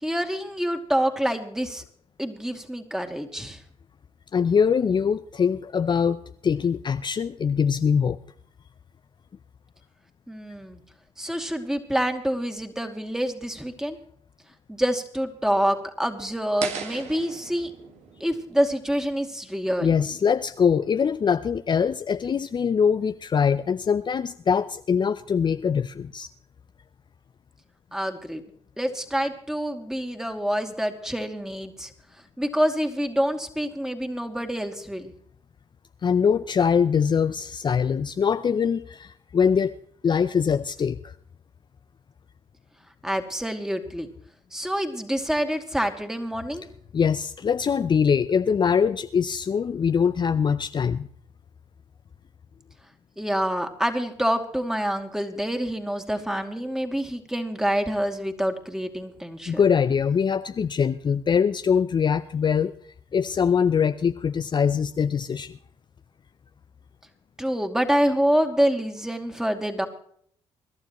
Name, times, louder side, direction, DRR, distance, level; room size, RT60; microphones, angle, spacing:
voice 1, 0.0-1.8 2.2-3.6 10.3-10.8 11.2-14.0 14.7-17.7 18.2-19.9 27.9-28.4 28.8-31.9 32.4-35.1 43.0-44.1 44.5-46.6 53.2-59.6 67.4-69.9, equal, 5° right, 5 dB, 2.4 m, -27 dB
voice 2, 4.3-6.2 6.4-8.2 19.8-26.3 36.0-39.8 40.0-41.1 46.9-51.1 59.5-62.7 63.1-65.6, left 6 dB, 40° left, 11 dB, 0.5 m, -23 dB
sound 1, 16.6-19.6, right 6 dB, 70° right, 1.8 m, -38 dB
25.0 x 12.0 x 3.1 m, 0.62 s
supercardioid pair, 55°, 12 cm